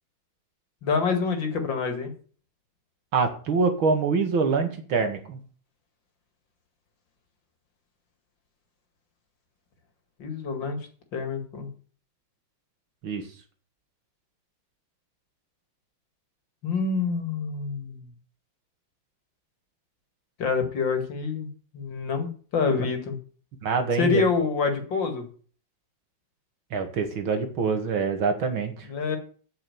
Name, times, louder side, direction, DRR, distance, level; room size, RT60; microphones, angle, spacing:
voice 1, 0.8-2.1 10.2-10.8 11.1-11.7 16.6-18.1 20.4-21.5 21.7-23.2 24.0-25.2 28.9-29.2, left 5 dB, 65° left, 6 dB, 2.8 m, -26 dB
voice 2, 3.1-5.4 13.0-13.3 23.6-24.2 26.7-28.9, right 4 dB, 80° right, 6 dB, 2.7 m, -25 dB
8.5 x 7.7 x 8.5 m, 0.42 s
omnidirectional pair, 2.2 m